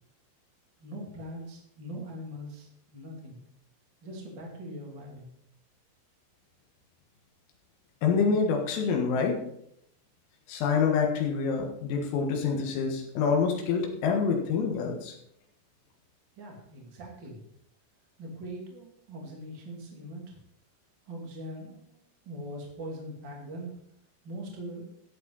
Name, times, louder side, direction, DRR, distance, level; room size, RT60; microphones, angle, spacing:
voice 1, 0.8-3.4 4.0-5.3 16.4-17.4 18.2-20.4 21.1-22.0 22.3-23.7 24.2-24.8, equal, 35° right, -1 dB, 2.1 m, -41 dB
voice 2, 8.0-9.4 10.5-15.1, left 5 dB, 80° left, 1 dB, 4.2 m, -26 dB
13.5 x 8.8 x 4.0 m, 0.73 s
omnidirectional pair, 5.9 m